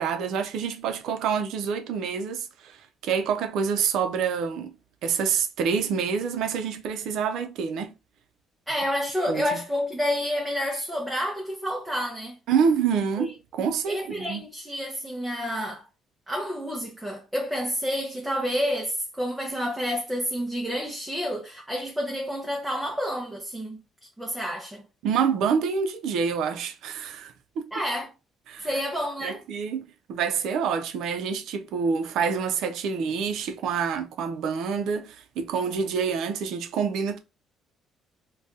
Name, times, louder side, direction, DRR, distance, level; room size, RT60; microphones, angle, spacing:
voice 1, 0.0-2.8 3.0-4.7 5.0-7.9 9.3-9.6 12.5-14.4 25.0-27.7 28.5-28.7 29.2-37.2, right 6 dB, 70° right, 0.5 m, -27 dB
voice 2, 8.7-12.4 13.2-13.3 13.9-15.8 16.3-23.8 24.2-24.8 27.7-28.1 28.6-29.4, equal, 5° right, 0.5 m, -29 dB
2.7 x 2.2 x 3.5 m
cardioid pair, 150°, 0 cm